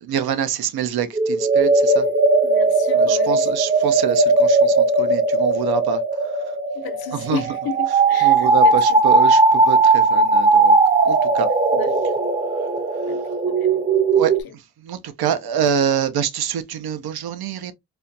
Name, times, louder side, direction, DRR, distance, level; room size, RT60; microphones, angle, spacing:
voice 1, 0.0-2.1 2.9-6.0 7.1-7.4 8.2-10.8 11.0-11.5 14.1-14.3 14.8-17.7, right 9 dB, 80° right, 0.6 m, -25 dB
sound 1, 1.1-14.4, right 3 dB, 25° right, 0.6 m, -17 dB
voice 2, 2.4-3.5 6.7-9.0 11.7-12.0 13.1-13.2 13.5-13.8 14.2-14.5, left 7 dB, 80° left, 0.8 m, -33 dB
4.2 x 2.2 x 2.6 m
cardioid pair, 60°, 37 cm